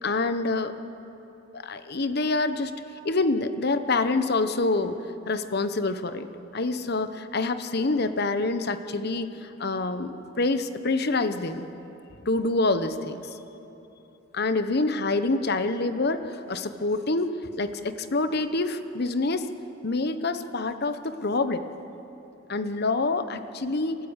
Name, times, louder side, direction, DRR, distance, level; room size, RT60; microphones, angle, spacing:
voice 1, 0.0-0.7 1.5-2.7 3.0-5.0 5.3-6.3 6.5-11.6 12.2-13.2 14.3-17.3 17.6-19.4 19.8-21.7 22.5-24.0, left 3 dB, 55° left, 10 dB, 1.0 m, -26 dB
29.0 x 13.0 x 8.1 m, 3.0 s
head